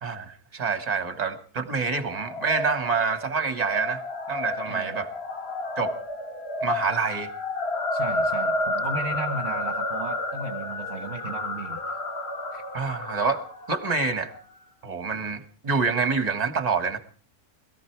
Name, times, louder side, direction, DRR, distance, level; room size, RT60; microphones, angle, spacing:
voice 1, 0.0-4.0 4.3-5.1 5.8-5.9 6.6-7.3 12.7-13.4 13.7-14.3 14.8-17.0, right 4 dB, 25° right, 10 dB, 1.6 m, -27 dB
sound 1, 2.0-14.4, left 2 dB, 45° left, 1.8 m, -31 dB
voice 2, 4.6-5.0 7.9-12.0 12.5-12.6, right 4 dB, 45° right, 6 dB, 1.4 m, -35 dB
21.5 x 14.5 x 4.6 m, 0.41 s
omnidirectional pair, 1.6 m